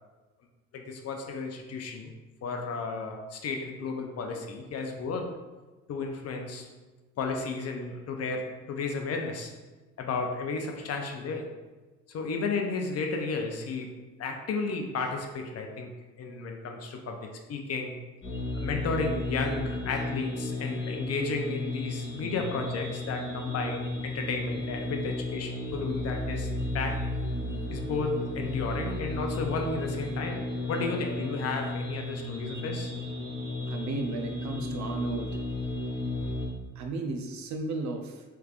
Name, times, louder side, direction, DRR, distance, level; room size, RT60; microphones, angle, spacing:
voice 1, 0.7-2.1 2.4-5.4 5.9-6.7 7.2-9.6 10.0-11.5 12.1-18.0 18.5-27.0 27.7-32.9 36.2-36.3, left 4 dB, 55° left, 3 dB, 0.6 m, -33 dB
sound 1, 18.2-36.5, left 1 dB, 40° left, 1.1 m, -34 dB
voice 2, 33.7-35.4 36.8-38.2, right 3 dB, 70° right, 4 dB, 0.6 m, -34 dB
3.3 x 3.2 x 2.4 m, 1.2 s
cardioid pair, 90°, 30 cm